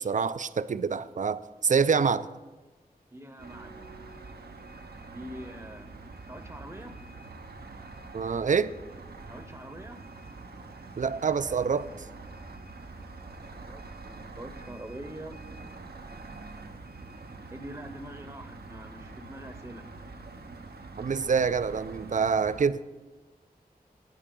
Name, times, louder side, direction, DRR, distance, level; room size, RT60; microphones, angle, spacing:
voice 1, 0.0-2.3 8.1-8.7 11.0-11.9 21.0-22.8, right 6 dB, 50° right, 15 dB, 0.4 m, -26 dB
voice 2, 3.1-3.9 5.1-5.9 6.3-6.9 9.3-10.0 13.6-15.4 17.5-19.8, right 1 dB, 20° right, 7 dB, 0.7 m, -44 dB
sound 1, 3.4-22.7, right 3 dB, 80° right, 0.7 m, -45 dB
17.0 x 5.7 x 3.8 m, 1.2 s
wide cardioid pair, 50°, 16 cm